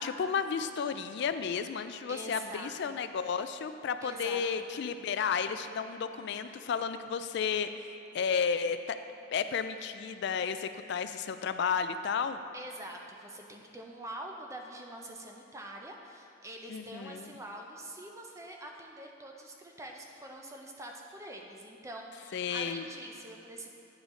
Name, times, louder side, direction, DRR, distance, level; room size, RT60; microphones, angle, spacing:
voice 1, 0.0-7.7 8.1-9.0 9.3-12.4 16.7-17.3 22.3-22.9, left 6 dB, 60° left, 10 dB, 0.3 m, -32 dB
voice 2, 2.1-3.0 4.0-4.7 6.4-6.6 12.5-23.7, right 1 dB, 15° right, 1 dB, 0.5 m, -45 dB
9.5 x 5.0 x 3.7 m, 2.9 s
head